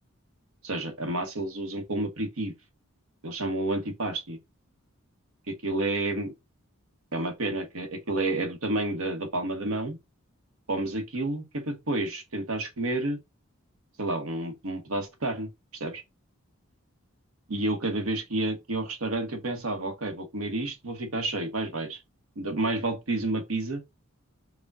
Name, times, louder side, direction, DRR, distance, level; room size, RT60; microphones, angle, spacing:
voice 1, 0.6-2.5 3.2-4.4 5.5-6.3 7.1-10.0 10.7-13.2 14.0-16.0 17.5-22.0 22.4-23.8, right 2 dB, 80° right, 1.0 m, -30 dB
4.9 x 2.2 x 3.5 m
head